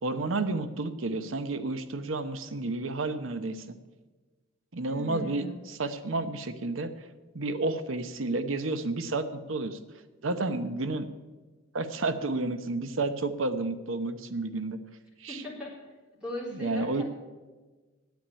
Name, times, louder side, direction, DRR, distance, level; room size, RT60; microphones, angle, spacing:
voice 1, 0.0-3.6 4.7-6.9 7.3-9.8 10.2-11.1 11.7-14.8 15.2-15.4 16.5-17.0, right 2 dB, 85° right, 10 dB, 0.9 m, -31 dB
voice 2, 4.9-5.6 15.3-15.7 16.2-17.0, left 1 dB, 5° right, -5 dB, 3.7 m, -38 dB
9.5 x 8.5 x 9.8 m, 1.3 s
head